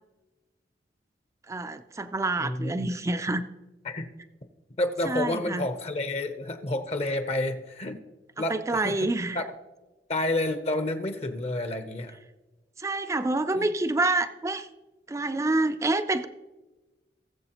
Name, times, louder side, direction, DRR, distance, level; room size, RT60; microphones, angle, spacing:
voice 1, 1.5-3.4 5.1-5.7 8.5-9.4 12.8-14.7 15.1-16.3, right 2 dB, 15° right, 10 dB, 0.4 m, -27 dB
voice 2, 2.4-2.9 3.8-4.1 4.8-8.0 8.4-9.1 9.3-9.4 10.1-12.2 13.5-13.7, left 1 dB, 35° left, 8 dB, 0.7 m, -30 dB
19.0 x 7.2 x 2.9 m, 1.1 s
head